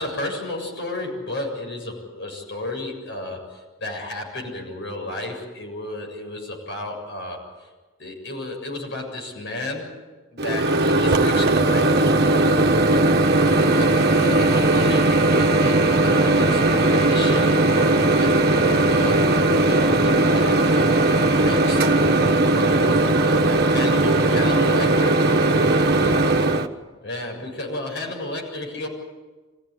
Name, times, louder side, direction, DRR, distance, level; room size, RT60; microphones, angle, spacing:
voice 1, 0.0-7.7 8.0-10.0 10.3-12.5 13.6-22.0 22.5-25.3 27.0-28.9, left 2 dB, 55° left, 1 dB, 7.3 m, -32 dB
Microwave oven, 10.4-26.7, right 2 dB, 50° right, 1.3 m, -18 dB
26.5 x 16.0 x 9.8 m, 1.3 s
head